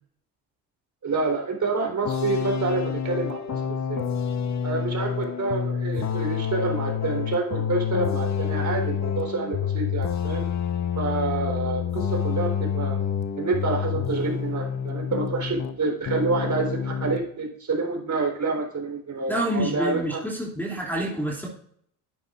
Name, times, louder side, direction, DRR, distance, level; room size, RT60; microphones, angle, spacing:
voice 1, 1.0-4.1 4.6-10.5 11.0-13.0 13.4-20.2, right 3 dB, 40° right, 0 dB, 3.7 m, -28 dB
sound 1, 2.0-15.8 16.1-17.2, left 8 dB, 35° left, 1.0 m, -28 dB
voice 2, 19.3-21.5, equal, 5° left, -4 dB, 2.7 m, -27 dB
10.5 x 9.0 x 2.5 m, 0.63 s
hypercardioid pair, 65°, 47 cm